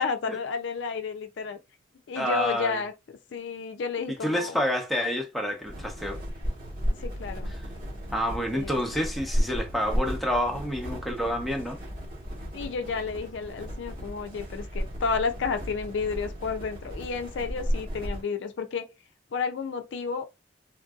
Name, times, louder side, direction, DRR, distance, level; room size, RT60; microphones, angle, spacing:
voice 1, 0.0-1.6 2.1-2.9 3.3-4.6 6.9-7.5 8.5-8.8 12.5-18.9 19.3-20.3, left 5 dB, 75° left, 0.4 m, -31 dB
voice 2, 2.2-2.8 4.2-6.2 8.1-11.8, equal, ahead, 0.7 m, -28 dB
sound 1, 5.6-18.2, equal, 50° right, 1.3 m, -34 dB
3.5 x 2.6 x 2.3 m
head